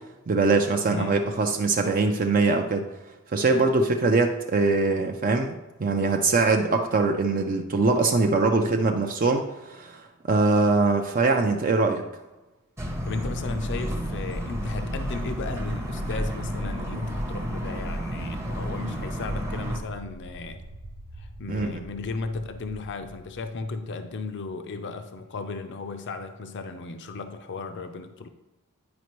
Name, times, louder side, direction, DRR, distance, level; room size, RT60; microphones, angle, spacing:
voice 1, 0.3-2.9 3.3-5.5 5.8-12.0 21.5-21.8, right 3 dB, 40° right, 4 dB, 0.4 m, -22 dB
voice 2, 0.9-1.3 13.1-20.6 21.2-28.3, left 3 dB, 55° left, 8 dB, 0.5 m, -35 dB
sound 1, 12.8-19.8, equal, 10° right, 0.7 m, -31 dB
Distant Explosion, 18.5-24.4, right 1 dB, 85° right, 0.7 m, -46 dB
9.4 x 5.0 x 3.0 m, 1.1 s
head